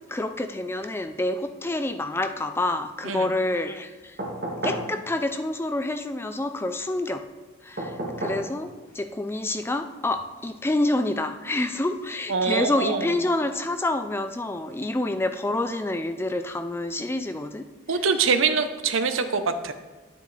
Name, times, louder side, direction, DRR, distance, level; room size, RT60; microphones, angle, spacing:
voice 1, 0.1-4.1 4.6-7.2 7.6-7.9 8.2-17.6, left 2 dB, 10° left, 8 dB, 0.3 m, -27 dB
sound 1, 4.2-4.9 7.8-8.5 10.1-10.2, right 1 dB, 50° right, 2.3 m, -31 dB
voice 2, 12.3-13.1 17.9-19.7, right 5 dB, 75° right, 9 dB, 0.7 m, -24 dB
9.9 x 8.4 x 3.3 m, 1.3 s
head